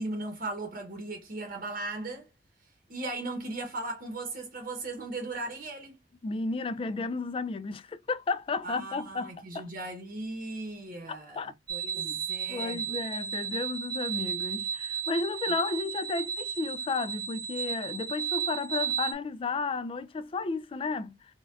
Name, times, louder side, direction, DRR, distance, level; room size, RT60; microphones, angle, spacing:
voice 1, 0.0-2.3 2.9-6.0 8.6-13.0, right 2 dB, 50° right, 0.8 m, -37 dB
voice 2, 6.2-9.7 11.1-11.5 11.9-12.2 12.5-21.2, left 3 dB, 30° left, 0.3 m, -33 dB
sound 1, 11.7-19.1, right 8 dB, 25° right, 0.7 m, -34 dB
4.3 x 2.2 x 2.4 m
head